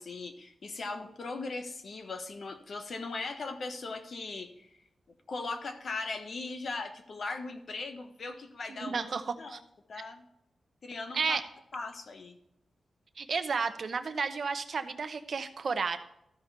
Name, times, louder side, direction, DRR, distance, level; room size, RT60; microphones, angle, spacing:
voice 1, 0.0-4.8 5.3-9.1 9.4-9.6 9.9-10.2 10.8-11.4 11.7-12.4, left 3 dB, 55° left, 7 dB, 1.2 m, -39 dB
voice 2, 8.7-9.2 9.5-9.6 11.1-11.4 13.2-16.0, right 5 dB, 55° right, 9 dB, 0.8 m, -32 dB
14.0 x 5.2 x 4.3 m, 0.78 s
wide cardioid pair, 130°, 0 cm